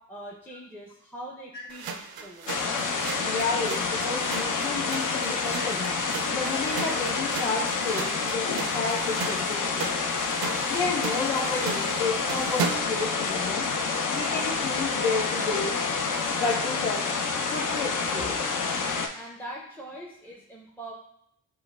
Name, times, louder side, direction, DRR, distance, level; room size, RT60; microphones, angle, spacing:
voice 1, 0.1-2.6 19.1-20.9, right 1 dB, 5° left, -2 dB, 0.6 m, -42 dB
sound 1, 1.7-13.0, right 5 dB, 60° right, 0.5 m, -37 dB
sound 2, 2.5-19.1, left 4 dB, 45° left, 0.6 m, -28 dB
voice 2, 3.2-5.9 6.3-9.9 10.7-13.7 14.1-15.7 16.4-17.0 17.5-18.4, left 4 dB, 70° left, -10 dB, 1.2 m, -31 dB
6.1 x 2.2 x 2.3 m, 0.76 s
supercardioid pair, 40°, 43 cm